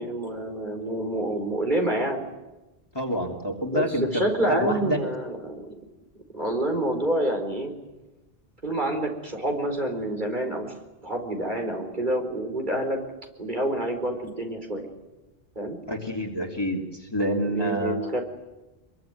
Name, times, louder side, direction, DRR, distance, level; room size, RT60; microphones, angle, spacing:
voice 1, 0.0-2.2 3.7-5.7 6.3-7.7 8.6-10.8 11.0-13.0 13.4-14.9 15.5-15.8 17.4-18.2, right 1 dB, 50° right, 3 dB, 4.7 m, -27 dB
voice 2, 2.9-5.0 15.9-18.1, equal, 25° left, 1 dB, 3.2 m, -28 dB
26.0 x 23.0 x 9.5 m, 1.1 s
omnidirectional pair, 1.0 m